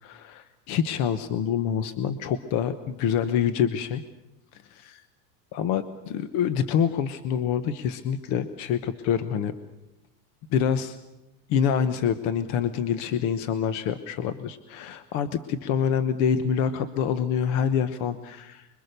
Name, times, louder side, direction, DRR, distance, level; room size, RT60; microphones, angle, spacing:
voice 1, 0.0-4.0 4.5-5.0 5.5-9.5 10.5-11.0 11.5-18.7, left 8 dB, 40° left, 12 dB, 1.0 m, -26 dB
25.5 x 23.5 x 6.7 m, 0.97 s
supercardioid pair, 165°, 45 cm